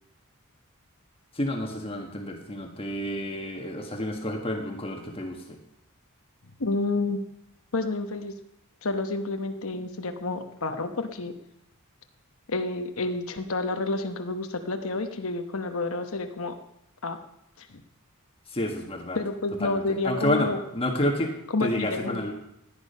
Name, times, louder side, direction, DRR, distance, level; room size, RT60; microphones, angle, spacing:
voice 1, 1.3-5.4 18.5-19.2 19.6-21.3 21.6-22.3, left 1 dB, 25° left, 2 dB, 1.5 m, -29 dB
voice 2, 6.6-7.2 7.7-8.3 8.8-11.4 12.5-16.6 17.0-17.2 17.6-17.7 19.1-20.6 21.5-22.3, left 3 dB, 65° left, 6 dB, 1.1 m, -29 dB
17.0 x 10.5 x 5.5 m, 0.80 s
head